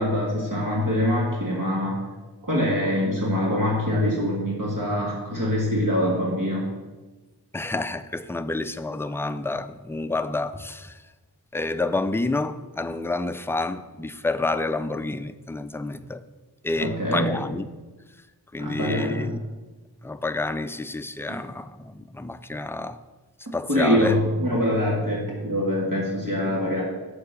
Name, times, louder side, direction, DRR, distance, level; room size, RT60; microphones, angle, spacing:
voice 1, 0.0-2.0 2.4-6.7 16.8-17.3 18.6-19.3 23.4-26.8, equal, 50° right, -3 dB, 1.7 m, -24 dB
voice 2, 7.5-11.0 11.5-16.2 16.6-17.7 18.5-19.4 20.0-23.0 23.5-24.2, left 2 dB, 5° left, 11 dB, 0.4 m, -29 dB
6.6 x 4.8 x 6.7 m, 1.2 s
wide cardioid pair, 45°, 40 cm